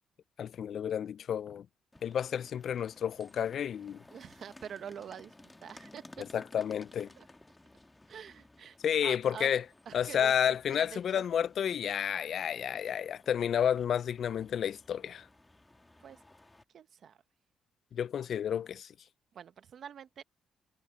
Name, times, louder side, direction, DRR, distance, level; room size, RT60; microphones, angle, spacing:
voice 1, 0.4-1.7 2.0-4.0 6.2-7.1 8.8-9.7 9.9-15.3 17.9-18.9, left 9 dB, 60° left, 0.4 m, -31 dB
sound 1, 1.9-16.6, left 2 dB, 15° left, 1.4 m, -58 dB
voice 2, 4.1-6.3 7.2-7.3 8.1-8.8 9.0-9.5 9.9-10.3 10.7-11.3 16.0-16.2 16.7-17.2 19.3-20.2, right 8 dB, 60° right, 1.2 m, -46 dB
cardioid pair, 90°, 0 cm